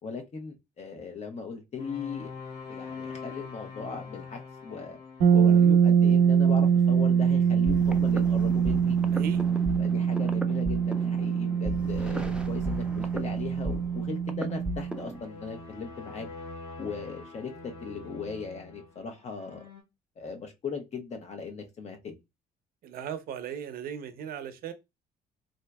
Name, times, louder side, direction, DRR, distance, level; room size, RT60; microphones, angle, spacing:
voice 1, 0.0-2.3 2.7-5.0 5.3-9.0 9.8-16.3 16.8-19.6 20.2-22.2, left 5 dB, 40° left, 0.9 m, -38 dB
sound 1, 1.8-19.8, left 3 dB, 75° left, 1.7 m, -46 dB
sound 2, 5.2-15.0, right 7 dB, 90° right, 0.9 m, -24 dB
sound 3, 7.7-15.2, equal, 5° right, 0.3 m, -36 dB
voice 2, 9.1-9.4 22.8-24.7, right 8 dB, 65° right, 0.7 m, -37 dB
3.7 x 2.8 x 2.2 m
cardioid pair, 110°, 17 cm